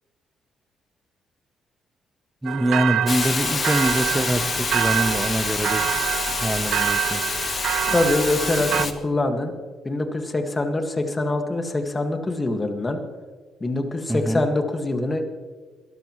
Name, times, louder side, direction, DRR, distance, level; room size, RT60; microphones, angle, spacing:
voice 1, 2.4-6.0 6.4-7.2 14.1-14.4, right 1 dB, 10° right, 11 dB, 0.8 m, -24 dB
sound 1, 2.5-8.9, right 11 dB, 75° right, 0.5 m, -26 dB
Hiss, 3.1-8.9, left 5 dB, 40° left, 1.2 m, -27 dB
voice 2, 7.9-9.5 9.8-13.0 13.6-15.3, left 2 dB, 25° left, 4 dB, 1.9 m, -24 dB
22.0 x 13.0 x 3.2 m, 1.4 s
cardioid pair, 90°, 0 cm